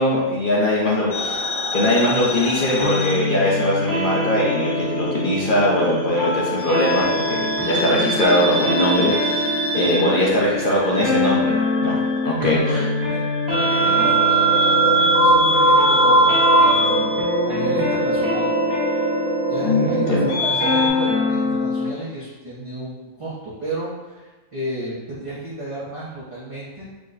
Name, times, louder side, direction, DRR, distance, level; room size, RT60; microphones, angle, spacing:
voice 1, 0.0-1.4 1.7-9.5 9.7-12.0 12.2-12.8 19.6-20.3, left 1 dB, 45° left, -5 dB, 0.7 m, -21 dB
sound 1, 1.1-4.0 4.2-5.4 6.6-20.9, right 2 dB, 70° left, 1.7 m, -21 dB
voice 2, 2.1-2.5 12.4-13.2 13.5-18.5 19.5-26.9, right 1 dB, 30° right, -8 dB, 0.6 m, -32 dB
sound 2, 2.8-21.9, left 2 dB, 50° right, 1.3 m, -25 dB
4.8 x 2.2 x 3.9 m, 1.2 s
omnidirectional pair, 1.5 m